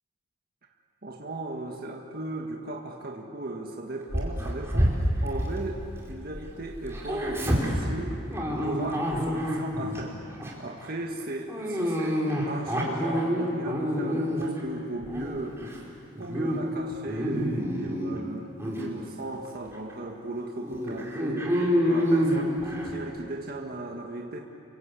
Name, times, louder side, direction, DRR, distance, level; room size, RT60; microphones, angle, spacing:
voice 1, 1.0-8.2 8.6-10.2 10.6-15.8 16.2-24.4, right 2 dB, 50° right, 1 dB, 1.8 m, -37 dB
Dog, 4.1-6.4 6.7-10.0 10.4-10.7 11.5-14.6 15.0-15.8 16.1-16.6 16.9-18.2 18.6-18.8 19.5-19.6 19.9-20.0 20.6-22.9, equal, 15° right, 4.6 m, -27 dB
29.5 x 24.0 x 8.4 m, 2.6 s
head